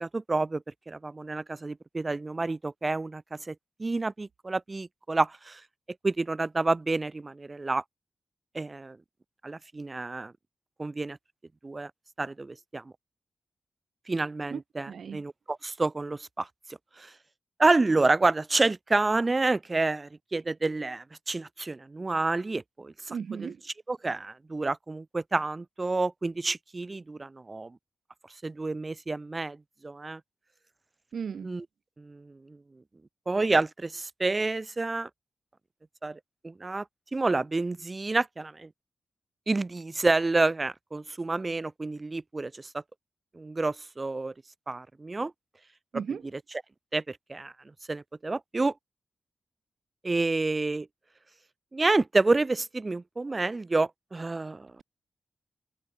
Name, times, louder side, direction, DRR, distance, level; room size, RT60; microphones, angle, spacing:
voice 1, 0.0-3.2 3.5-5.6 6.0-7.8 8.5-9.0 9.4-10.3 10.8-11.2 11.6-11.9 12.2-12.9 14.1-16.5 17.0-17.1 17.6-23.1 23.4-23.5 23.9-27.8 28.4-29.6 29.8-30.2 31.4-31.6 32.0-32.6 33.3-35.1 36.0-36.2 36.4-36.8 37.1-38.7 39.5-42.8 43.3-44.3 44.7-45.3 46.9-47.5 47.9-48.7 50.0-50.9 51.7-54.7, right 3 dB, 35° right, 1.3 m, -29 dB
voice 2, 14.5-15.2 23.1-23.6 31.1-31.5 45.9-46.2, right 6 dB, 70° right, 2.6 m, -36 dB
cardioid pair, 55°, 0 cm